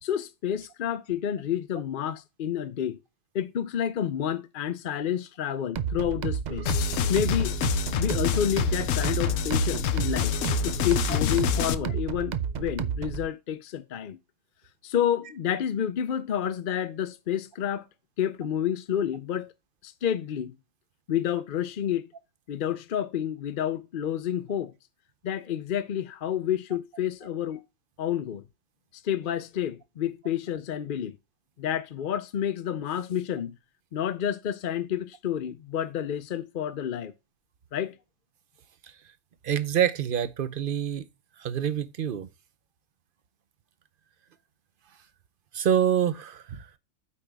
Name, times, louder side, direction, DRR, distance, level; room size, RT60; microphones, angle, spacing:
voice 1, 0.0-3.0 3.3-6.7 7.1-7.5 8.0-10.3 10.6-14.2 14.8-17.9 18.2-19.5 19.8-20.5 21.1-22.0 22.5-24.7 25.2-27.6 28.0-28.4 28.9-31.2 31.6-33.6 33.9-37.1 37.7-37.9, left 9 dB, 55° left, 0.6 m, -29 dB
sound 1, 5.8-13.3, right 7 dB, 70° right, 0.4 m, -31 dB
sound 2, 6.7-11.7, left 10 dB, 75° left, 1.0 m, -27 dB
voice 2, 39.4-41.0 41.4-42.3 45.5-46.7, right 9 dB, 50° right, 0.8 m, -26 dB
8.5 x 5.0 x 3.4 m
omnidirectional pair, 1.4 m